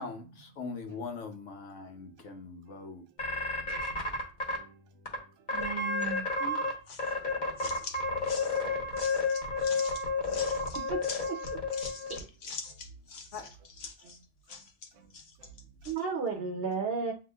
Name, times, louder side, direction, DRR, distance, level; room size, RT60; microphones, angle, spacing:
voice 1, 0.0-3.0 13.3-13.5, left 4 dB, 85° left, 1.2 m, -41 dB
voice 2, 1.8-2.3 2.7-2.8 3.5-4.1 4.5-6.0 6.3-6.4 7.2-9.6 10.0-10.5 12.6-12.8 13.3-13.5 14.0-14.1 14.5-14.6 14.9-15.1 15.4-15.8, right 5 dB, 85° right, 1.0 m, -60 dB
sound 1, 3.2-4.6 5.1-5.2 5.5-6.7 7.0-12.2, left 3 dB, 40° left, 1.1 m, -31 dB
voice 3, 5.5-6.6 10.7-11.0 11.3-11.6 12.1-12.2 15.8-17.1, right 5 dB, 60° right, 0.9 m, -34 dB
sound 2, 6.9-16.0, left 4 dB, 65° left, 0.9 m, -44 dB
7.7 x 3.0 x 2.3 m
omnidirectional pair, 1.2 m